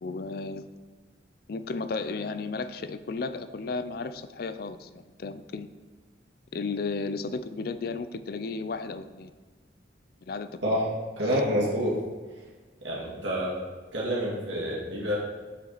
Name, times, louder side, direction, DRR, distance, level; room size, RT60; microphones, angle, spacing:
voice 1, 0.0-0.7 1.5-5.7 6.5-9.3 10.3-10.6, left 4 dB, 55° left, 12 dB, 0.4 m, -34 dB
voice 2, 11.2-12.0 12.8-13.5 13.9-15.2, equal, 85° right, -6 dB, 2.1 m, -27 dB
7.4 x 7.1 x 4.0 m, 1.4 s
head